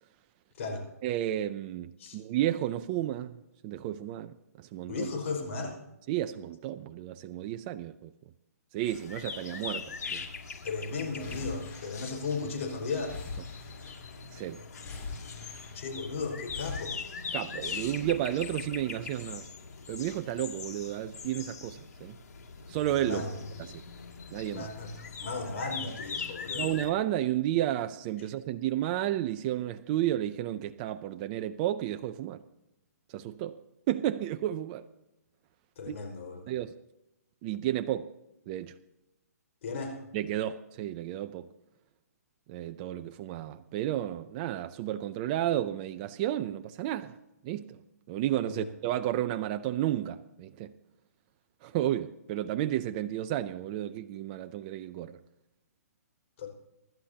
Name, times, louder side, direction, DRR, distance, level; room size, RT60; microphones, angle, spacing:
voice 1, 1.0-3.3 3.6-5.1 6.1-8.1 8.7-10.3 14.3-14.6 17.3-19.5 19.9-22.2 22.7-23.3 23.6-23.8 24.3-24.7 26.5-32.4 33.1-33.6 33.9-34.9 35.9-36.0 36.5-36.7 37.4-38.1 38.5-38.8 40.1-41.5 42.5-47.2 47.4-47.8 48.1-50.7 51.6-55.2, right 12 dB, 25° right, 0.5 m, -32 dB
voice 2, 4.9-5.8 10.6-13.2 15.7-17.0 23.1-23.3 24.5-26.7 35.8-36.4 39.6-40.0 48.5-48.6 56.4-56.5, left 4 dB, 55° left, 5.2 m, -35 dB
sound 1, 8.9-26.9, left 5 dB, 75° left, 2.3 m, -41 dB
sound 2, 11.2-12.6 13.0-14.3 14.8-16.0 16.5-16.8, left 4 dB, 20° left, 2.8 m, -42 dB
24.5 x 11.5 x 2.8 m
hypercardioid pair, 155°, 9 cm